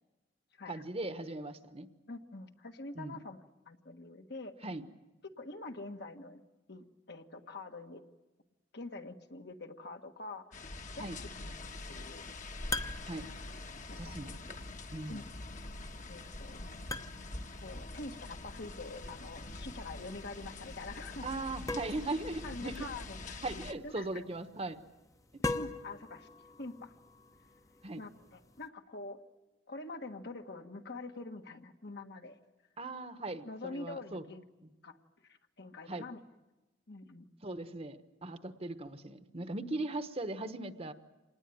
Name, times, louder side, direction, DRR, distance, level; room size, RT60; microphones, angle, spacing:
voice 1, 0.7-1.9 2.9-3.2 4.6-4.8 11.0-11.2 13.0-13.3 13.9-14.6 14.9-15.2 21.2-22.8 23.4-24.8 27.8-28.0 32.8-34.2 34.6-34.7 35.9-36.0 37.4-40.9, right 2 dB, 35° right, 10 dB, 1.2 m, -39 dB
voice 2, 2.1-4.5 5.4-6.4 6.7-8.0 8.7-10.6 10.9-12.3 13.9-14.1 15.1-15.3 16.1-16.7 17.6-21.3 22.4-24.1 25.4-26.3 26.6-27.0 28.0-29.2 29.7-32.4 33.4-34.4 34.8-35.0 35.2-36.2 36.9-37.3, left 2 dB, 65° left, 5 dB, 1.6 m, -45 dB
sound 1, 10.5-23.7, left 2 dB, 45° left, 1.4 m, -45 dB
sound 2, 11.5-28.7, left 2 dB, 20° left, 0.9 m, -45 dB
26.5 x 19.5 x 9.3 m, 1.1 s
head